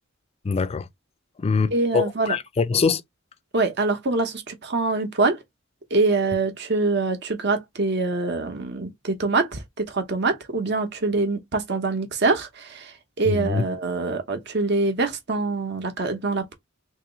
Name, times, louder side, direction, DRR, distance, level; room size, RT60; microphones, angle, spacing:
voice 1, 0.4-0.9 1.4-3.0 13.2-13.6, left 5 dB, 30° left, 0.3 m, -23 dB
voice 2, 1.7-2.4 3.5-5.4 5.9-12.9 13.2-16.5, right 3 dB, 55° right, 0.9 m, -24 dB
3.0 x 2.9 x 3.7 m
head